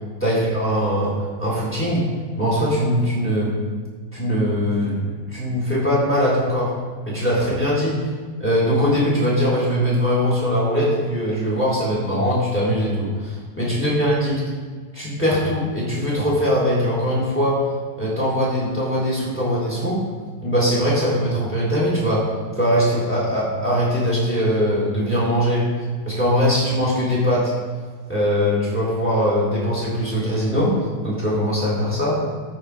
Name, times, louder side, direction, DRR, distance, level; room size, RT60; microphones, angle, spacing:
voice 1, 0.2-2.1 2.4-3.5 4.1-5.0 5.3-6.7 7.1-8.0 8.4-14.4 14.9-17.6 18.0-20.0 20.4-22.2 22.6-25.7 26.1-27.5 28.1-30.7 31.0-32.2, equal, 5° left, -7 dB, 3.6 m, -21 dB
13.5 x 6.0 x 4.9 m, 1.5 s
omnidirectional pair, 2.2 m